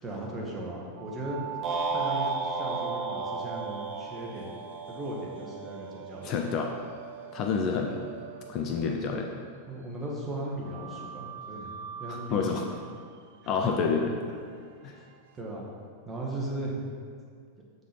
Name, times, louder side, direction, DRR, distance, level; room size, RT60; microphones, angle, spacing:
voice 1, 0.0-1.6 1.9-4.6 4.9-6.4 9.7-11.7 12.0-12.8 13.4-13.7 15.3-15.7 16.0-16.8, right 1 dB, 15° right, -3 dB, 1.3 m, -37 dB
sound 1, 1.0-9.8 10.6-15.4, right 10 dB, 55° right, 0.3 m, -43 dB
sound 2, 1.6-5.9, right 3 dB, 30° right, 0.7 m, -34 dB
voice 2, 6.2-6.7 7.3-8.1 8.5-9.3 12.1-12.7 13.5-14.2 14.8-15.0, left 5 dB, 35° left, 2 dB, 0.5 m, -28 dB
7.4 x 3.8 x 4.3 m, 2.1 s
figure-of-eight pair, 90°, 0 cm